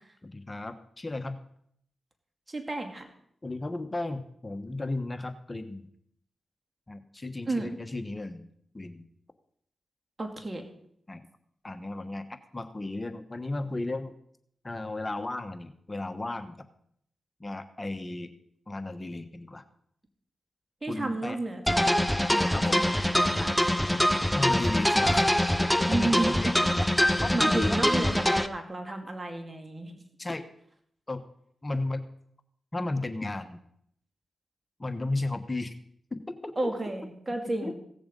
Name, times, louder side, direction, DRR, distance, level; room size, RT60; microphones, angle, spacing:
voice 1, 0.2-1.4 3.4-5.9 6.9-8.5 8.7-9.0 11.1-11.2 11.6-14.1 14.6-16.6 17.4-18.3 18.7-19.6 20.9-21.4 22.5-22.8 24.3-25.3 25.6-26.5 27.2-28.2 30.2-30.5 31.1-31.2 31.6-32.0 32.7-33.6 34.8-35.7 36.1-36.7 37.6-37.7, left 2 dB, 30° left, 9 dB, 1.2 m, -34 dB
voice 2, 2.5-3.1 7.4-7.8 10.2-10.6 20.8-21.9 22.3-23.5 25.9-26.4 27.3-29.9 36.6-37.7, right 2 dB, 35° right, 5 dB, 2.3 m, -32 dB
sound 1, 21.7-28.5, left 1 dB, 5° left, 0.8 m, -24 dB
16.5 x 7.0 x 5.3 m, 0.68 s
supercardioid pair, 40°, 0 cm